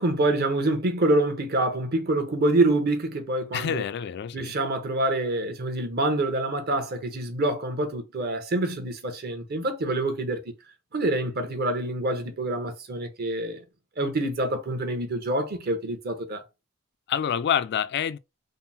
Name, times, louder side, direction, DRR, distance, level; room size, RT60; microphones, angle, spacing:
voice 1, 0.0-3.8 4.3-10.4 10.9-13.6 14.0-16.4, right 2 dB, 50° right, 0.8 m, -26 dB
voice 2, 3.5-4.5 17.1-18.2, left 8 dB, 55° left, 0.3 m, -27 dB
3.7 x 2.0 x 4.0 m
head